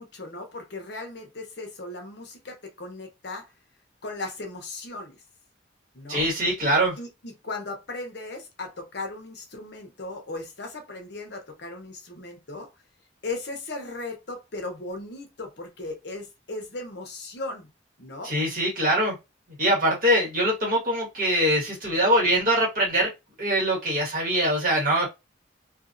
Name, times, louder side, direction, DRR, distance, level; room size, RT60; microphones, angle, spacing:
voice 1, 0.0-3.5 4.0-5.2 5.9-6.3 7.0-12.7 13.2-17.7 18.0-18.4, left 2 dB, 55° left, 0.8 m, -37 dB
voice 2, 6.1-6.9 18.2-19.1 19.6-23.1 23.4-25.1, right 1 dB, 45° right, 1.6 m, -23 dB
2.8 x 2.6 x 2.5 m
head